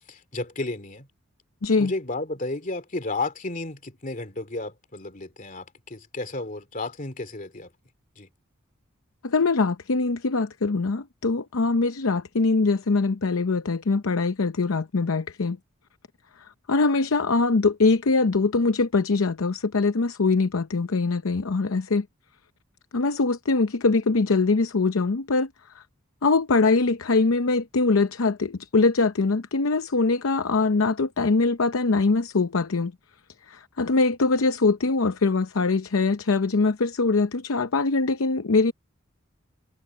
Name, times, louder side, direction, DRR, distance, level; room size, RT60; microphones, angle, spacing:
voice 1, 0.1-1.1 1.8-7.7 8.2-8.3, left 2 dB, 40° left, 2.7 m, -32 dB
voice 2, 1.6-1.9 9.2-15.6 16.7-22.1 22.9-25.5 25.7-25.8 26.2-32.9 33.5-38.7, left 3 dB, 80° left, 0.7 m, -22 dB
head